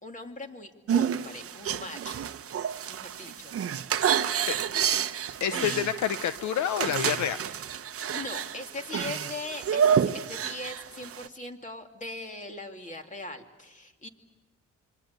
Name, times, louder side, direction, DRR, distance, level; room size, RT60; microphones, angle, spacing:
voice 1, 0.0-2.2 2.9-3.5 3.9-4.3 5.5-5.8 8.1-14.1, left 2 dB, 25° left, 4 dB, 2.8 m, -40 dB
sound 1, 0.9-11.3, right 8 dB, 50° right, 0.9 m, -29 dB
voice 2, 5.4-7.4, left 9 dB, 70° left, 12 dB, 0.9 m, -28 dB
26.5 x 24.0 x 8.3 m, 1.1 s
cardioid pair, 90°, 30 cm